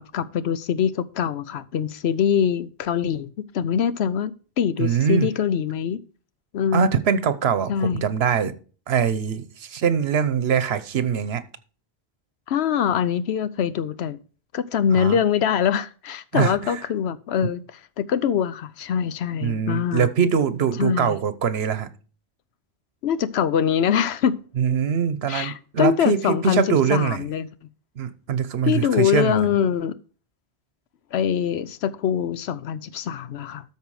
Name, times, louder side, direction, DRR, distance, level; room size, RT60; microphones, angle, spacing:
voice 1, 0.0-3.3 3.5-6.0 6.5-6.9 7.7-8.0 12.5-14.2 14.5-20.1 20.8-21.2 23.0-24.4 25.3-27.5 28.6-30.0 31.1-33.6, left 8 dB, 90° left, 0.9 m, -23 dB
voice 2, 4.8-5.3 6.7-8.5 8.9-11.4 15.0-15.2 16.3-16.8 19.4-21.9 24.6-27.2 28.0-29.4, right 7 dB, 75° right, 1.1 m, -23 dB
13.0 x 4.7 x 4.7 m
omnidirectional pair, 1.1 m